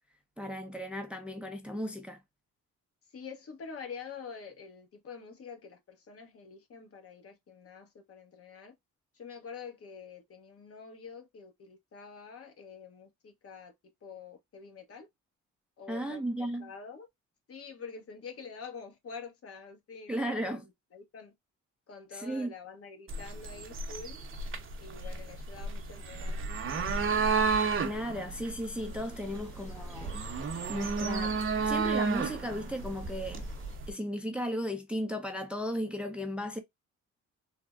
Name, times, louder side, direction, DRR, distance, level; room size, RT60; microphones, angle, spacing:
voice 1, 0.4-2.2 15.9-16.7 20.1-20.7 22.1-22.5 27.8-30.1 30.7-33.5 33.9-36.6, equal, 5° right, 0.5 m, -35 dB
voice 2, 3.1-8.7 9.1-13.7 14.0-15.1 15.8-17.1 17.5-20.6 20.9-21.3 21.9-24.2 24.8-26.4, left 5 dB, 50° left, 0.9 m, -47 dB
sound 1, 23.1-33.9, right 5 dB, 45° right, 0.7 m, -32 dB
sound 2, 28.7-33.8, right 1 dB, 25° left, 1.1 m, -48 dB
3.4 x 2.0 x 2.3 m
cardioid pair, 90°, 30 cm